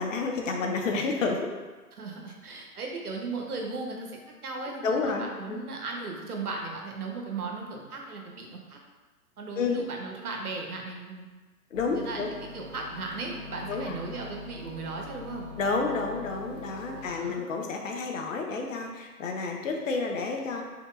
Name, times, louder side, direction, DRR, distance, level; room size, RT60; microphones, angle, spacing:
voice 1, 0.0-1.4 4.8-5.6 9.5-9.8 11.7-12.3 13.7-13.9 15.6-20.6, left 4 dB, 55° left, 2 dB, 0.8 m, -30 dB
voice 2, 1.9-8.8 9.4-11.3 11.9-15.5 16.9-17.4, right 3 dB, 70° right, 1 dB, 1.0 m, -37 dB
sound 1, 11.7-17.1, left 2 dB, 20° right, 0.7 m, -43 dB
5.4 x 3.6 x 2.5 m, 1.3 s
figure-of-eight pair, 110°, 46 cm